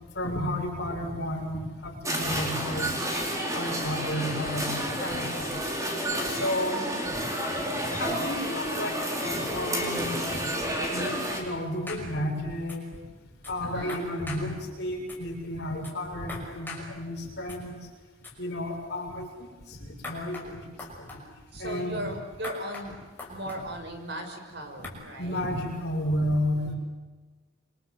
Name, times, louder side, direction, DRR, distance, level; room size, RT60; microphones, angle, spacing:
voice 1, 0.1-2.9 3.5-5.7 6.3-6.8 7.9-10.4 10.9-12.8 13.5-17.8 18.4-20.6 21.0-21.2 21.6-22.0 24.8-24.9 25.2-26.8, equal, 55° left, 0 dB, 7.4 m, -32 dB
sound 1, 2.1-11.4, equal, 15° right, 4.5 m, -30 dB
voice 2, 6.7-7.0 13.6-14.0 21.5-22.9 23.3-25.4 26.7-26.8, right 1 dB, 55° right, 4 dB, 5.8 m, -37 dB
sound 2, 11.9-12.0 12.7-12.8 13.4-13.5 13.9-14.4 15.1-15.2 15.8-15.9 16.3-16.8 17.5-17.6 18.2-18.3 20.0-20.5 20.8-21.2 22.4-22.9 23.2-23.6 24.8-24.9, left 3 dB, 10° left, 6.0 m, -40 dB
28.0 x 25.5 x 8.0 m, 1.3 s
head